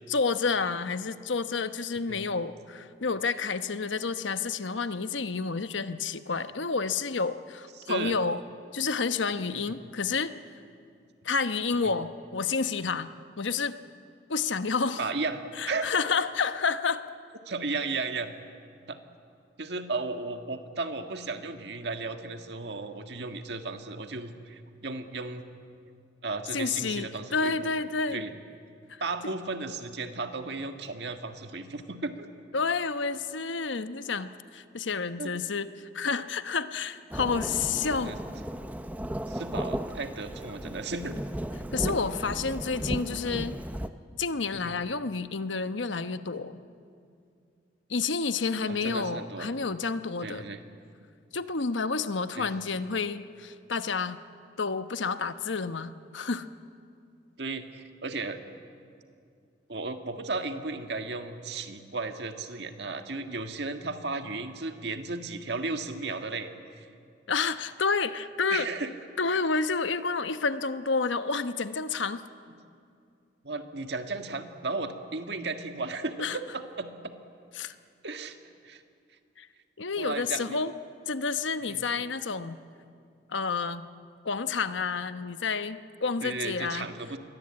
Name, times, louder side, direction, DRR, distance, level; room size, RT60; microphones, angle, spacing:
voice 1, 0.1-8.4 8.7-10.3 11.2-13.1 13.4-13.8 14.3-15.0 15.6-17.0 26.5-28.2 28.9-29.0 32.5-38.1 41.7-43.5 44.2-46.6 47.9-50.5 51.3-54.2 54.6-56.5 67.3-68.7 69.2-72.2 76.2-76.4 77.6-77.7 79.4-79.5 79.8-80.7 81.1-82.6 83.3-83.9 84.2-86.9, left 4 dB, 85° left, 11 dB, 1.0 m, -30 dB
voice 2, 7.8-8.2 9.7-9.8 15.0-15.9 17.5-18.3 18.9-19.0 19.6-25.5 26.2-27.7 28.1-28.4 29.0-32.3 35.2-35.3 38.1-38.2 39.3-41.2 41.9-42.0 44.5-44.7 48.7-49.5 50.2-50.6 52.4-52.5 57.4-58.4 59.7-66.5 66.8-66.9 68.5-68.9 73.4-77.1 78.0-78.4 78.6-78.8 80.0-80.6 81.7-81.9 86.2-87.2, right 3 dB, 65° right, 6 dB, 1.8 m, -35 dB
Thunderstorm / Rain, 37.1-43.9, right 1 dB, 10° right, 0.7 m, -35 dB
29.0 x 22.0 x 8.8 m, 2.4 s
head